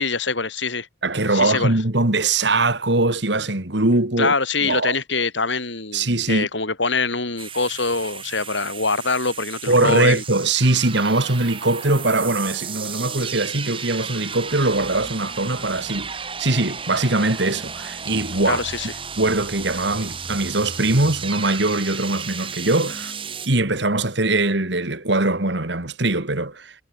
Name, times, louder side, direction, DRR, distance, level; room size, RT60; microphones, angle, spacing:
voice 1, 0.0-0.9 1.3-1.7 4.2-10.2 18.4-18.9, left 4 dB, 75° left, 5.1 m, -24 dB
voice 2, 1.0-4.3 4.6-5.0 5.9-6.5 9.7-18.6 19.2-23.1 23.5-26.7, right 2 dB, 65° right, 2.5 m, -21 dB
sound 1, 7.4-23.5, right 6 dB, 25° right, 4.9 m, -34 dB
head